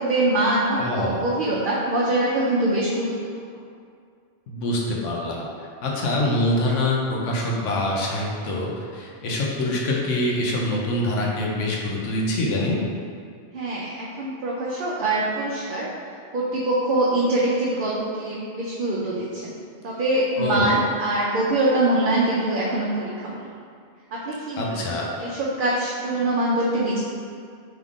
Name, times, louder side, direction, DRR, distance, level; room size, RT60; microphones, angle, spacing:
voice 1, 0.0-3.1 13.5-15.9 16.3-19.5 19.8-23.5 24.2-24.8 25.2-27.0, right 1 dB, 55° right, -5 dB, 0.6 m, -23 dB
voice 2, 0.8-1.2 4.5-5.5 5.8-12.8 20.4-20.8 24.6-25.1, left 1 dB, 90° left, -3 dB, 1.1 m, -25 dB
3.6 x 3.4 x 3.5 m, 2.2 s
omnidirectional pair, 1.2 m